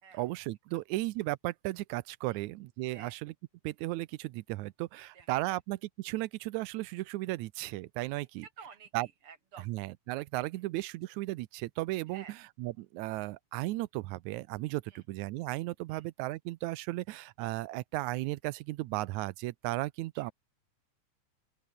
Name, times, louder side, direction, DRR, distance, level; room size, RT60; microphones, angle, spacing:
voice 1, 0.1-3.3 3.6-8.5 8.9-9.1 9.7-12.2 12.6-20.3, right 19 dB, 80° right, 2.0 m, -35 dB
voice 2, 5.0-5.6 8.4-9.7 10.5-10.6 12.1-12.4 14.9-15.0 15.9-16.1 20.1-20.3, right 6 dB, 50° right, 2.8 m, -53 dB
open air
omnidirectional pair, 3.5 m